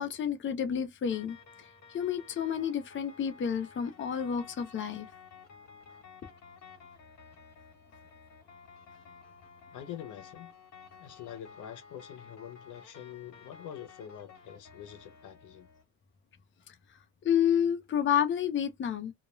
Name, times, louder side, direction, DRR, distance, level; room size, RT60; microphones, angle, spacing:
voice 1, 0.0-1.4 1.9-5.1 17.2-19.1, left 8 dB, 40° left, 0.6 m, -29 dB
sound 1, 1.1-15.8, left 6 dB, 60° left, 1.0 m, -53 dB
voice 2, 9.7-10.5 11.0-15.7, left 10 dB, 80° left, 0.7 m, -45 dB
2.3 x 2.1 x 3.0 m
cardioid pair, 90°, 30 cm